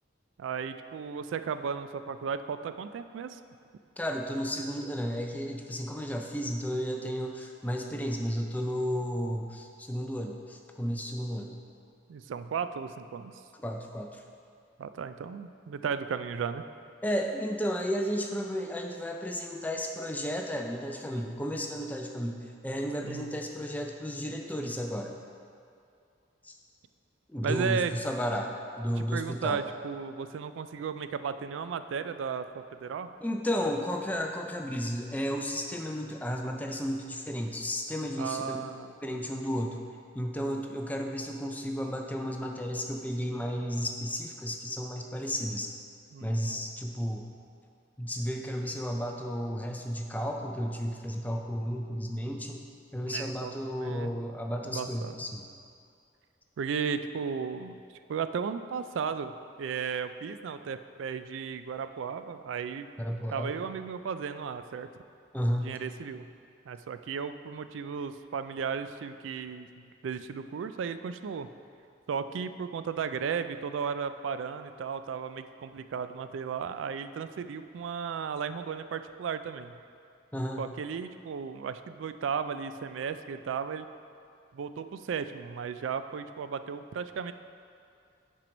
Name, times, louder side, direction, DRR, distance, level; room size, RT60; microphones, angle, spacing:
voice 1, 0.4-3.4 12.1-13.3 14.8-16.6 23.0-23.4 27.4-27.9 29.0-33.1 38.2-39.2 46.1-46.6 53.0-54.1 54.7-55.1 56.6-57.8 58.1-62.9 63.3-64.9 65.6-66.3 66.7-71.5 72.1-79.8 80.6-83.9 84.5-87.3, right 6 dB, 85° right, 11 dB, 0.3 m, -35 dB
voice 2, 4.0-11.5 13.6-14.2 17.0-25.1 26.4-26.6 27.3-28.5 28.8-29.6 33.2-38.6 39.0-39.8 40.1-45.7 46.2-47.3 48.0-52.7 52.9-55.4 63.0-63.5 65.3-65.7 80.3-80.7, equal, 10° left, 2 dB, 0.4 m, -33 dB
8.9 x 4.5 x 5.2 m, 2.4 s
head